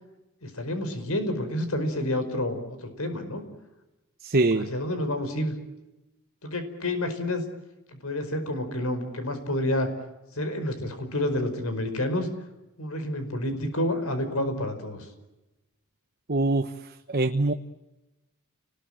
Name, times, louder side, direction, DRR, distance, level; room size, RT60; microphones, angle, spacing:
voice 1, 0.4-3.4 4.5-5.5 6.4-7.4 7.9-9.9 10.3-12.3 12.8-15.1, left 1 dB, 75° left, 8 dB, 5.0 m, -29 dB
voice 2, 4.2-4.7 16.3-16.7 17.1-17.5, right 2 dB, 45° right, 7 dB, 1.1 m, -23 dB
30.0 x 20.5 x 8.9 m, 1.0 s
head